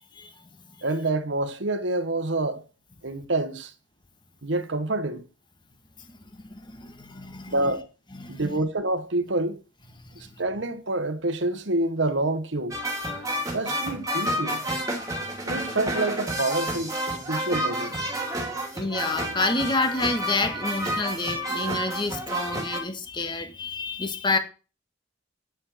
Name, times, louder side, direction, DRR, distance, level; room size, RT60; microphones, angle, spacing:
voice 1, 0.1-0.7 6.1-7.7 8.1-8.6 10.0-10.3 18.7-24.4, left 3 dB, 25° left, 1.6 m, -29 dB
voice 2, 0.8-2.6 3.0-3.7 4.4-5.2 7.5-7.9 8.3-9.6 10.4-12.8 13.5-14.6 15.5-18.0, right 2 dB, 70° right, 1.2 m, -27 dB
sound 1, 12.7-22.8, right 1 dB, 20° right, 2.6 m, -30 dB
9.6 x 7.2 x 5.9 m
head